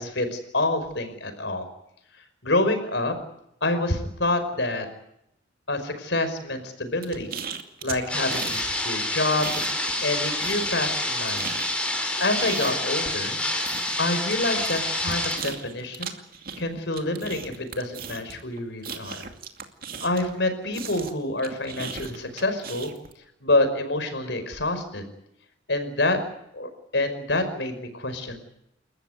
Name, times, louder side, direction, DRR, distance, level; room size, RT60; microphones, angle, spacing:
voice 1, 0.0-1.7 2.4-3.1 3.6-4.9 5.7-7.3 7.8-9.6 10.0-11.5 12.2-13.4 14.0-16.2 16.6-19.2 20.0-22.9 23.4-25.1 25.7-26.2 26.5-28.4, left 2 dB, 70° left, 8 dB, 5.4 m, -27 dB
sound 1, 7.0-8.7 8.9-10.1 10.4-20.4 20.7-23.1, right 6 dB, 55° right, 2.5 m, -37 dB
sound 2, 8.1-15.4, left 1 dB, 5° left, 5.3 m, -28 dB
29.5 x 14.5 x 9.5 m, 0.79 s
head